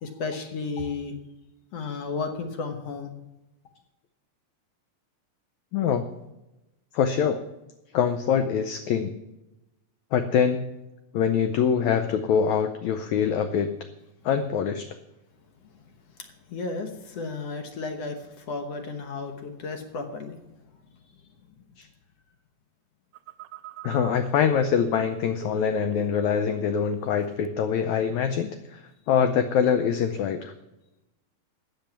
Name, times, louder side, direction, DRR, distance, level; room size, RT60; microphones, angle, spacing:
voice 1, 0.0-1.2 1.7-3.1 16.5-20.4, left 4 dB, 65° left, 6 dB, 1.7 m, -33 dB
voice 2, 5.7-6.1 6.9-7.4 7.9-9.1 10.1-10.7 11.1-13.7 14.2-14.9 21.8-21.9 23.8-30.5, left 7 dB, 80° left, 8 dB, 1.6 m, -24 dB
Telephone, 23.1-26.2 26.4-27.1 27.5-27.8, right 19 dB, 80° right, 2.0 m, -39 dB
14.0 x 8.8 x 5.9 m, 0.97 s
omnidirectional pair, 4.2 m